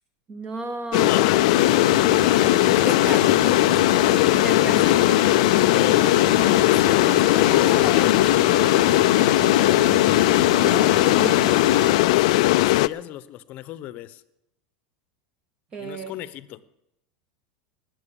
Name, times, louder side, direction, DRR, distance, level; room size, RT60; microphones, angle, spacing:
voice 1, 0.3-1.5 2.9-3.2 4.4-5.2 10.6-11.4 15.7-16.1, right 3 dB, 30° right, 8 dB, 1.9 m, -33 dB
sound 1, 0.9-12.9, left 18 dB, 70° left, 0.4 m, -18 dB
voice 2, 1.0-1.6 2.3-4.5 5.4-6.1 6.5-8.3 12.0-14.2 15.8-16.6, left 14 dB, 50° left, 15 dB, 0.9 m, -36 dB
sound 2, 1.5-12.0, right 9 dB, 85° right, 0.7 m, -33 dB
Zipper (clothing), 6.4-8.3 9.1-9.2 10.2-10.3, left 3 dB, 10° left, 0.7 m, -38 dB
19.5 x 7.7 x 7.1 m, 0.86 s
supercardioid pair, 120°, 4 cm